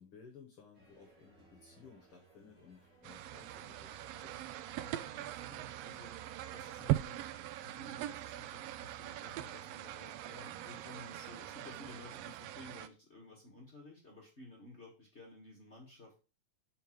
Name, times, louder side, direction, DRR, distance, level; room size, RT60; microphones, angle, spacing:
voice 1, 0.0-4.4, left 6 dB, 60° left, 4 dB, 1.6 m, -58 dB
sound 1, 0.7-7.5, right 2 dB, 35° right, 2.6 m, -63 dB
sound 2, 3.0-12.9, right 14 dB, 85° right, 1.4 m, -41 dB
voice 2, 4.8-6.1 6.5-16.2, left 2 dB, 40° left, -2 dB, 1.0 m, -55 dB
5.7 x 5.4 x 4.5 m, 0.34 s
omnidirectional pair, 3.4 m